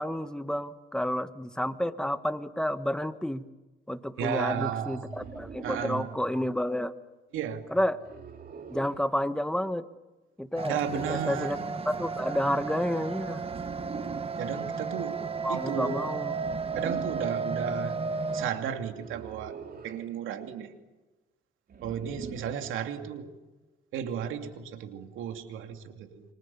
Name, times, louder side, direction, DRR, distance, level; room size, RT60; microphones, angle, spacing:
voice 1, 0.0-3.4 3.9-6.9 7.7-8.0 8.7-9.9 10.4-11.6 11.9-13.4 15.4-16.3, left 1 dB, 5° left, 11 dB, 1.5 m, -30 dB
voice 2, 4.2-5.2 5.6-6.2 7.3-7.7 10.7-11.5 14.4-15.2 15.5-16.0 16.7-18.0 18.3-19.6 19.8-20.7 21.8-23.3 23.9-26.2, right 8 dB, 90° right, 6 dB, 2.7 m, -34 dB
sound 1, 5.1-6.1 8.0-9.0 10.8-11.8 13.4-14.4 16.4-17.4 19.0-20.0 21.7-22.7, right 6 dB, 50° right, 2.8 m, -43 dB
sound 2, 10.6-18.5, right 4 dB, 30° right, 1.6 m, -33 dB
29.5 x 25.5 x 7.1 m, 1.1 s
cardioid pair, 90°, 20 cm